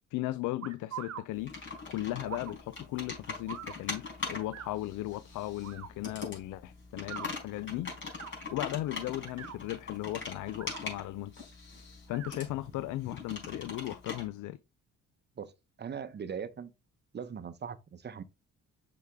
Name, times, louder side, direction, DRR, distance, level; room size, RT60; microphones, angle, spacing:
voice 1, 0.1-1.5 1.9-7.9 8.5-11.3 12.1-14.6, left 16 dB, 85° left, 0.5 m, -36 dB
sound 1, 0.6-1.2 2.2-2.5 3.5-3.8 4.5-4.7 5.6-5.9 7.0-7.3 8.0-8.3 9.1-9.6 10.5-10.8 12.1-12.3, right 9 dB, 55° right, 1.1 m, -43 dB
Computer keyboard, 1.3-14.3, left 4 dB, 40° left, 4.2 m, -42 dB
voice 2, 15.8-16.7 17.1-18.2, right 7 dB, 35° right, 0.8 m, -40 dB
6.5 x 4.8 x 3.5 m
cardioid pair, 90°, 30 cm